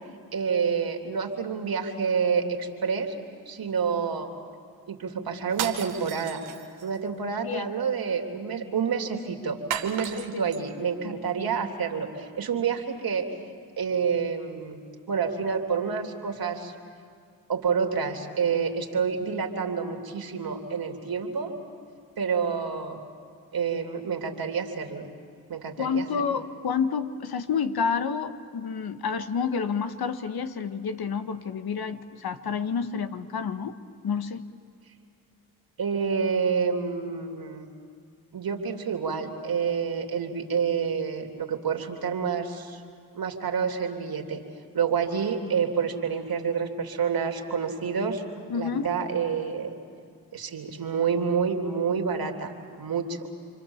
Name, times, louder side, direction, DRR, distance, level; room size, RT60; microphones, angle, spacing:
voice 1, 0.3-3.1 3.5-4.3 4.9-6.4 6.8-13.3 13.8-14.8 15.1-16.7 17.5-21.5 22.2-23.0 23.5-25.1 25.5-26.1 35.8-37.7 38.3-42.8 43.1-44.4 44.7-48.2 48.5-49.7 50.3-52.5 52.8-53.3, right 6 dB, 50° right, 3 dB, 3.1 m, -28 dB
sound 1, 5.5-7.0 9.7-10.6, right 9 dB, 80° right, 1.6 m, -34 dB
voice 2, 10.2-10.5 25.8-33.7 34.0-34.4 48.5-48.9, left 6 dB, 55° left, 9 dB, 1.4 m, -29 dB
27.5 x 25.5 x 7.3 m, 2.1 s
hypercardioid pair, 50°, 44 cm